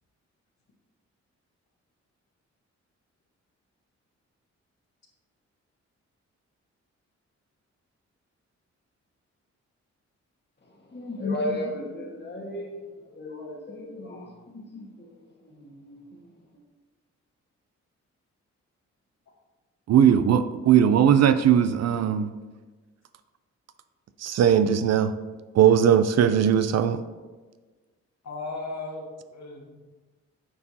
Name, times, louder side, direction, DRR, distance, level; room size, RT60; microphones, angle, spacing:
voice 1, 10.6-16.4, left 1 dB, 35° left, 1.5 m, -35 dB
voice 2, 19.9-22.3 24.2-25.1 25.5-27.0, right 9 dB, 60° right, 0.4 m, -19 dB
voice 3, 28.2-29.8, left 3 dB, 65° left, 1.4 m, -36 dB
8.8 x 4.5 x 2.8 m
cardioid pair, 95°, 29 cm